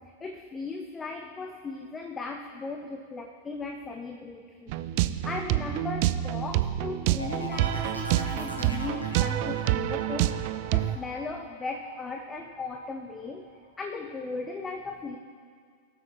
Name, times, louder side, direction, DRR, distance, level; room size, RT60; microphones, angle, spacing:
voice 1, 0.0-13.5 13.8-15.2, left 3 dB, 15° left, 5 dB, 0.6 m, -37 dB
sound 1, 4.7-11.0, right 14 dB, 45° right, 0.3 m, -27 dB
sound 2, 7.2-12.8 13.2-13.7, equal, 80° left, 1.5 m, -40 dB
19.0 x 8.3 x 3.0 m, 2.1 s
figure-of-eight pair, 90°, 0 cm